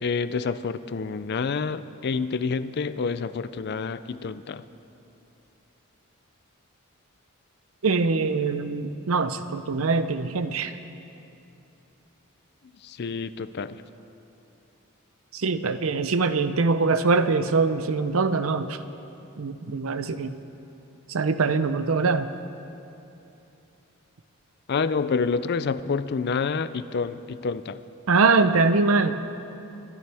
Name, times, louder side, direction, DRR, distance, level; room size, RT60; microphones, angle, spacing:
voice 1, 0.0-4.6 12.8-13.8 24.7-27.8, left 5 dB, 50° left, 14 dB, 0.4 m, -28 dB
voice 2, 7.8-10.7 15.3-18.8 19.4-20.4 21.1-22.3 28.1-29.1, right 4 dB, 75° right, 11 dB, 0.7 m, -23 dB
26.0 x 12.5 x 3.5 m, 2.9 s
head